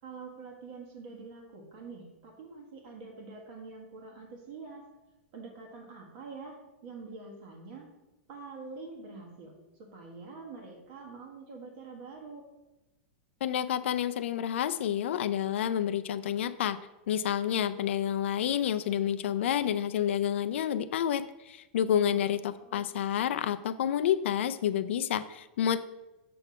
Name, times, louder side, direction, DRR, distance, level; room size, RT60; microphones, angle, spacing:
voice 1, 0.0-4.9 5.3-6.6 6.8-7.9 8.3-12.4 22.1-22.2 22.5-22.8, right 4 dB, 55° right, 0 dB, 1.6 m, -46 dB
voice 2, 13.4-16.8 17.1-25.8, left 9 dB, 75° left, 12 dB, 0.3 m, -29 dB
6.9 x 3.5 x 5.8 m, 1.0 s
hypercardioid pair, 130°, 7 cm